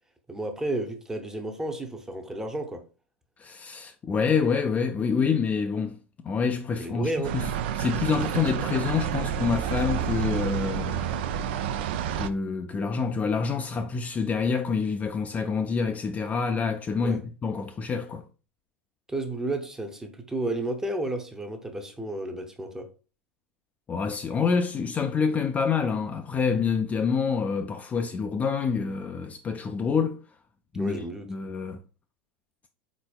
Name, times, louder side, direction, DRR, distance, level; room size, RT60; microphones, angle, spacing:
voice 1, 0.3-2.8 6.8-7.4 17.0-17.2 19.1-22.9 30.7-31.3, right 1 dB, 10° right, 0.7 m, -32 dB
voice 2, 3.4-6.0 6.2-7.4 7.8-11.0 12.1-18.2 23.9-30.2 30.7-31.0 31.3-31.8, left 5 dB, 20° left, 0.4 m, -27 dB
sound 1, 7.2-12.3, right 9 dB, 60° right, 0.4 m, -29 dB
4.1 x 4.0 x 2.3 m
figure-of-eight pair, 85°, 7 cm